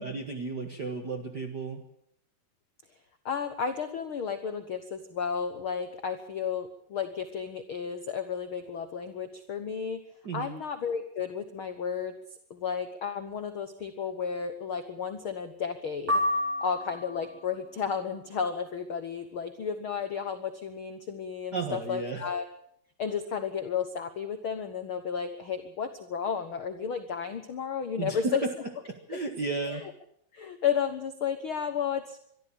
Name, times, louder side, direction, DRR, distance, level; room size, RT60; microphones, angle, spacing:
voice 1, 0.0-1.8 10.2-10.6 21.5-22.3 28.0-28.4 28.9-29.8, right 4 dB, 55° right, 5 dB, 1.2 m, -34 dB
voice 2, 3.2-10.0 10.3-12.1 12.5-16.2 16.6-22.4 23.0-28.4 29.1-29.2 29.6-29.8 30.3-32.2, left 7 dB, 75° left, 8 dB, 1.2 m, -33 dB
sound 1, 16.1-17.4, left 1 dB, 30° right, 1.4 m, -29 dB
23.0 x 13.0 x 8.7 m, 0.70 s
omnidirectional pair, 4.3 m